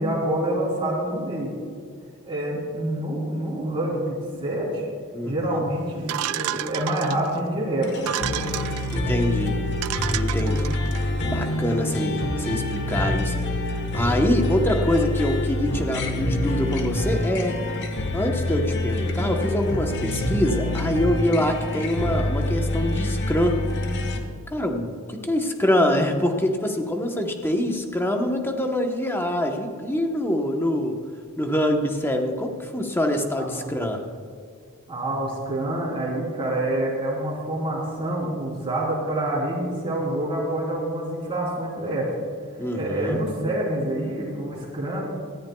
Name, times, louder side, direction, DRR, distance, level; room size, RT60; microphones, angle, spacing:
voice 1, 0.0-1.5 2.2-4.9 5.2-8.5 10.4-10.7 33.4-33.7 34.9-42.1 42.7-45.0, right 1 dB, 25° right, -4 dB, 3.4 m, -27 dB
voice 2, 5.1-5.6 8.9-9.6 10.1-10.7 11.3-13.3 13.9-17.6 18.1-23.6 24.5-31.0 31.4-34.0 42.6-43.2, left 1 dB, 10° left, 3 dB, 0.9 m, -25 dB
sound 1, 6.1-7.4 8.0-9.0 9.5-9.6 9.8-11.0, right 13 dB, 80° right, 0.3 m, -31 dB
sound 2, 7.8-24.2, left 1 dB, 55° left, 1.1 m, -26 dB
18.0 x 14.0 x 2.3 m, 2.1 s
head